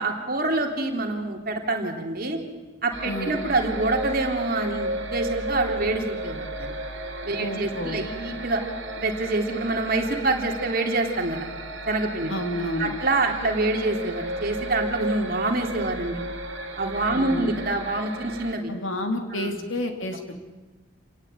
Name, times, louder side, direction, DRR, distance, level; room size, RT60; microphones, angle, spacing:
voice 1, 0.0-2.4 2.8-6.7 7.2-8.6 9.0-11.5 11.9-12.3 12.8-16.2 16.8-18.7 19.3-19.6, right 2 dB, 50° right, 2 dB, 3.3 m, -26 dB
sound 1, 2.9-18.5, right 1 dB, 70° right, 3.3 m, -34 dB
voice 2, 3.0-3.4 7.4-8.0 12.3-12.9 17.1-17.5 18.7-20.4, left 1 dB, 80° left, 5 dB, 3.4 m, -30 dB
28.0 x 18.5 x 9.0 m, 1.2 s
head